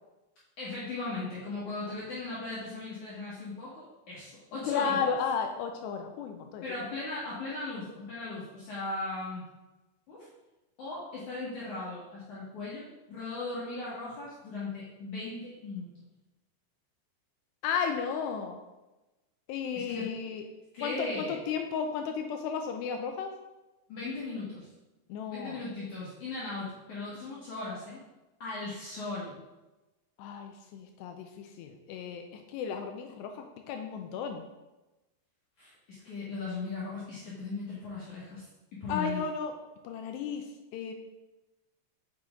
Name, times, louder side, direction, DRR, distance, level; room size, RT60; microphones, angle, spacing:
voice 1, 0.6-5.2 6.6-9.4 10.1-10.3 10.8-15.9 19.8-20.1 20.7-21.4 23.9-24.7 25.3-28.0 28.4-29.4 35.6-38.4 38.7-39.2, left 3 dB, 60° left, -8 dB, 2.3 m, -38 dB
voice 2, 4.6-6.6 17.6-18.6 19.5-20.4 20.8-23.3 25.1-25.6 30.2-34.4 38.9-39.5 39.8-40.4 40.7-40.9, left 6 dB, 80° left, 4 dB, 2.6 m, -33 dB
7.3 x 6.3 x 3.7 m, 1.1 s
omnidirectional pair, 5.2 m